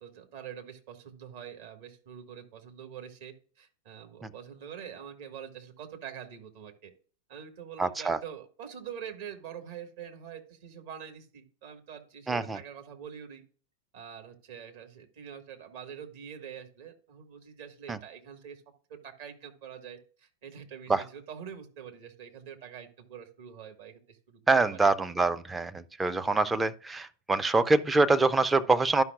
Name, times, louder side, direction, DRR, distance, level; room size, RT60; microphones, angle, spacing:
voice 1, 0.0-6.9 7.3-13.4 13.9-18.6 18.9-24.4 24.7-24.9, right 8 dB, 55° right, 1.6 m, -45 dB
voice 2, 7.8-8.2 12.3-12.6 17.9-18.0 20.9-21.0 24.5-29.0, right 3 dB, 10° right, 0.5 m, -25 dB
12.5 x 5.6 x 2.4 m
figure-of-eight pair, 90°, 0 cm